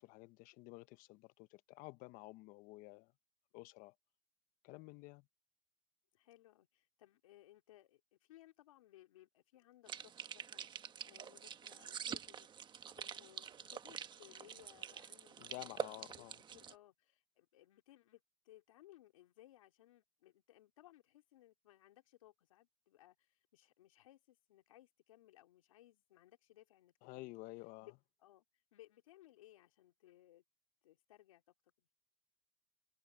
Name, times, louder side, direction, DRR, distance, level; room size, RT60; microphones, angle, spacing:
voice 1, 0.0-3.1 3.5-3.9 4.6-5.3 15.4-16.4 27.0-27.9, left 22 dB, 55° left, 1.0 m, -52 dB
voice 2, 6.1-12.5 12.9-16.2 16.5-27.4 27.8-27.9 28.2-28.4 28.7-30.4 30.8-31.4 31.8-31.9, left 14 dB, 85° left, 3.5 m, -63 dB
sound 1, 9.9-16.7, right 8 dB, 30° right, 1.5 m, -47 dB
supercardioid pair, 115°, 17 cm